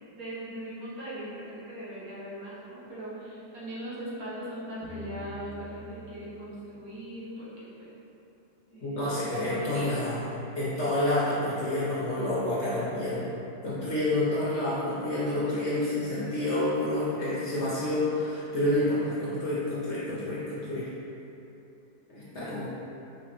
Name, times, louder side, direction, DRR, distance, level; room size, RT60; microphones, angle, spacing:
voice 1, 0.0-7.9 8.7-10.0 22.3-22.7, right 1 dB, 65° right, -9 dB, 1.5 m, -40 dB
sound 1, 4.8-7.7, right 1 dB, 15° right, 1.1 m, -47 dB
voice 2, 8.8-10.3 10.6-13.2 13.6-20.9 22.1-22.7, left 1 dB, 55° left, -8 dB, 0.9 m, -28 dB
5.2 x 3.2 x 3.0 m, 2.9 s
omnidirectional pair, 1.7 m